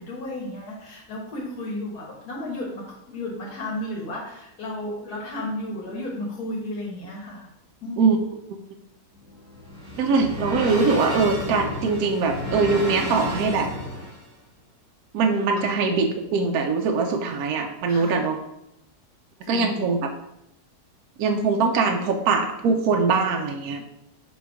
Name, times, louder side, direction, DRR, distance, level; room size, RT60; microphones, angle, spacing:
voice 1, 0.0-7.5 7.8-8.1 15.6-15.7 17.9-18.3 19.4-19.9, left 1 dB, 75° left, -4 dB, 2.1 m, -33 dB
sound 1, 9.2-14.3, left 1 dB, 55° right, 2.5 m, -31 dB
voice 2, 10.0-13.7 15.1-18.4 19.5-20.1 21.2-23.8, right 4 dB, 75° right, 3 dB, 1.2 m, -22 dB
7.5 x 3.1 x 4.8 m, 0.82 s
omnidirectional pair, 1.7 m